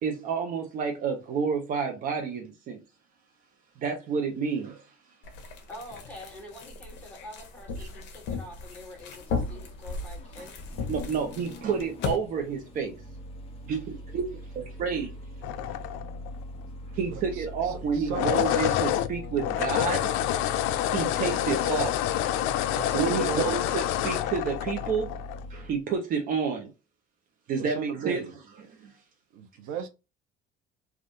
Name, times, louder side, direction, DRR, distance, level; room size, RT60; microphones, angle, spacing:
voice 1, 0.0-2.8 3.8-4.8 10.9-12.9 13.7-13.8 14.1-14.3 14.6-15.1 17.0-20.1 20.9-21.9 22.9-25.1 25.5-26.7 27.5-28.3, right 6 dB, 45° right, 0.7 m, -29 dB
sound 1, 5.2-12.2, left 4 dB, 65° left, 0.9 m, -36 dB
voice 2, 5.7-10.7, left 1 dB, 5° left, 1.6 m, -46 dB
Engine starting, 7.4-25.8, left 1 dB, 30° left, 0.6 m, -42 dB
sound 2, 15.4-16.4 18.0-25.4, left 12 dB, 85° left, 0.4 m, -28 dB
voice 3, 17.1-18.8 22.7-23.6 27.6-28.3 29.3-29.9, right 7 dB, 90° right, 0.8 m, -37 dB
3.5 x 2.4 x 2.6 m
cardioid pair, 160°, 20 cm